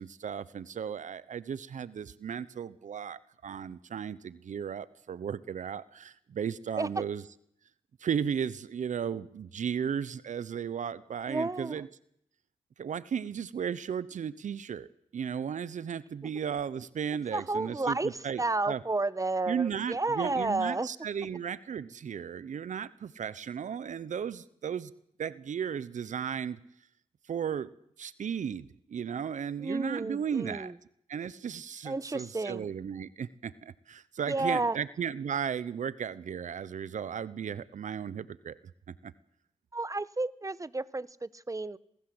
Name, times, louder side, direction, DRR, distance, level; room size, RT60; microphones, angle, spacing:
voice 1, 0.0-7.2 8.0-11.9 12.8-14.9 15.1-18.8 19.5-24.9 25.2-26.6 27.3-27.7 28.0-30.7 31.1-38.6 38.9-39.1, right 7 dB, 80° right, 18 dB, 0.9 m, -35 dB
voice 2, 11.3-11.8 17.3-20.9 29.6-30.8 31.8-32.7 34.3-34.8 39.7-41.8, right 2 dB, 25° right, 17 dB, 1.2 m, -31 dB
27.0 x 19.5 x 7.9 m, 0.72 s
cardioid pair, 50°, 13 cm